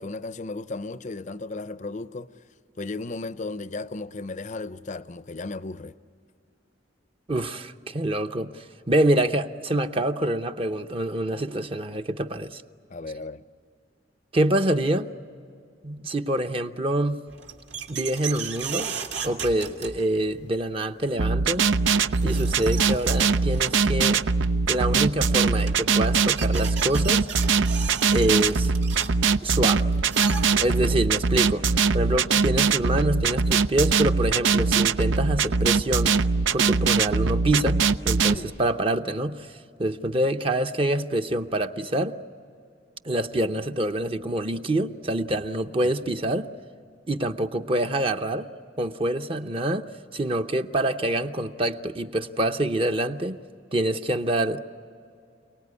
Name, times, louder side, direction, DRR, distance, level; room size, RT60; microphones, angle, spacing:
voice 1, 0.0-2.3 2.8-6.0 12.9-13.4 16.0-16.1 38.3-38.5 45.8-45.9, left 3 dB, 40° left, 0.6 m, -35 dB
voice 2, 7.3-12.6 14.3-15.1 15.8-17.2 17.9-18.9 19.2-21.7 22.2-24.2 24.7-27.3 28.1-28.7 29.4-29.8 30.6-36.2 36.5-42.2 43.0-46.5 47.1-48.5 48.8-49.9 50.1-53.4 53.7-54.6, right 1 dB, 30° right, 0.7 m, -26 dB
sound 1, 17.3-20.4 21.7-21.8 22.1-23.9 25.1-25.2 25.5-30.9, right 6 dB, 70° right, 2.1 m, -36 dB
sound 2, 21.2-38.3, right 5 dB, 90° right, 0.6 m, -22 dB
28.5 x 19.0 x 9.7 m
head